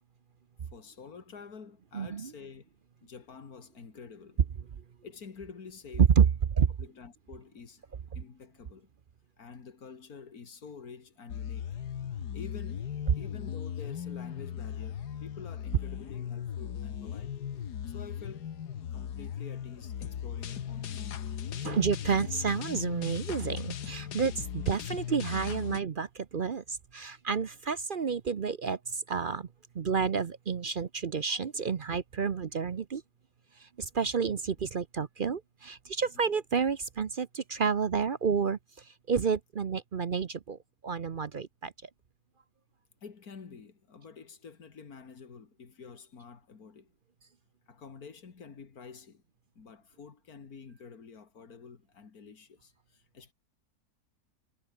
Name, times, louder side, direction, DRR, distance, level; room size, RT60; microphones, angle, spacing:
voice 1, 0.7-2.7 3.0-4.4 5.0-6.1 6.8-7.8 8.1-8.9 9.4-11.7 12.3-12.9 13.1-17.4 17.9-18.6 18.9-21.2 36.1-36.2 43.0-46.9 47.7-49.2 49.6-53.3, left 5 dB, 65° left, 2.7 m, -48 dB
voice 2, 1.9-2.3 6.0-6.3 6.6-6.7 21.6-29.5 29.7-33.0 33.6-40.6 40.8-41.9, right 6 dB, 45° right, 0.7 m, -30 dB
sound 1, 11.3-25.8, left 9 dB, 90° left, 1.8 m, -38 dB
omnidirectional pair, 1.7 m